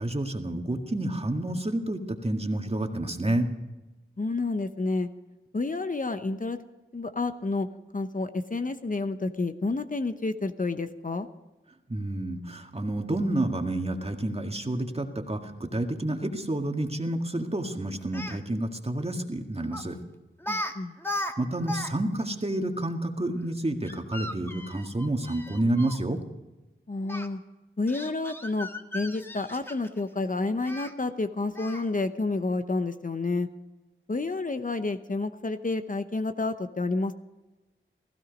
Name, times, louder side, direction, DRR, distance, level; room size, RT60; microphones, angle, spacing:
voice 1, 0.0-3.5 11.9-20.0 21.4-26.2, right 1 dB, 30° right, 4 dB, 1.9 m, -29 dB
voice 2, 4.2-5.1 5.5-6.6 6.9-7.7 7.9-11.3 20.5-21.0 26.9-27.4 27.8-28.7 28.9-33.5 34.1-37.1, left 3 dB, 40° left, 9 dB, 0.9 m, -29 dB
Speech, 18.0-18.4 19.7-19.9 20.4-20.7 21.0-21.9 22.2-22.3 23.8-26.0 27.1-27.3 27.9-30.0 30.7-30.9 31.6-31.9, left 1 dB, 10° left, 1.5 m, -36 dB
16.0 x 15.5 x 5.3 m, 1.1 s
wide cardioid pair, 55°, 21 cm